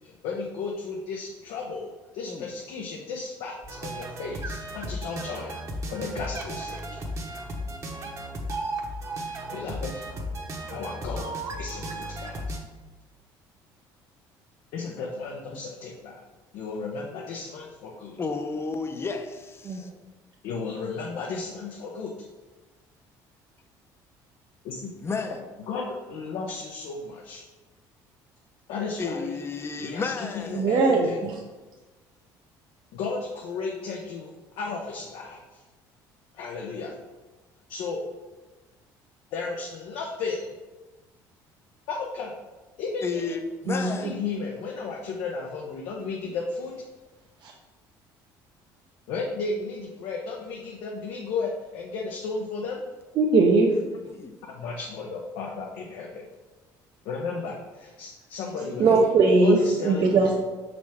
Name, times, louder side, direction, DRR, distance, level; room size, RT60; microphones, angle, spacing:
voice 1, 0.0-5.5 5.9-7.0 9.5-9.9 10.7-12.6 14.7-16.2 16.5-18.2 20.4-22.2 24.6-24.9 25.7-27.4 28.7-31.2 32.9-35.6 36.3-36.9 37.7-38.0 39.3-40.5 41.9-42.3 42.8-43.4 43.7-46.7 49.1-52.9 54.5-56.3 57.0-59.1 59.4-60.2, left 4 dB, 80° left, 0.9 m, -34 dB
sound 1, 3.6-12.6, right 1 dB, 35° right, 1.1 m, -35 dB
voice 2, 18.2-19.9 25.0-25.4 29.0-30.7 43.0-44.1 54.1-54.3 58.6-59.1, left 4 dB, 30° left, 0.7 m, -32 dB
voice 3, 30.6-31.4 43.7-43.9 47.4-47.5 53.2-53.8 58.8-59.6 59.8-60.4, right 3 dB, 55° right, 0.8 m, -20 dB
6.1 x 5.1 x 3.5 m
supercardioid pair, 95°, 9 cm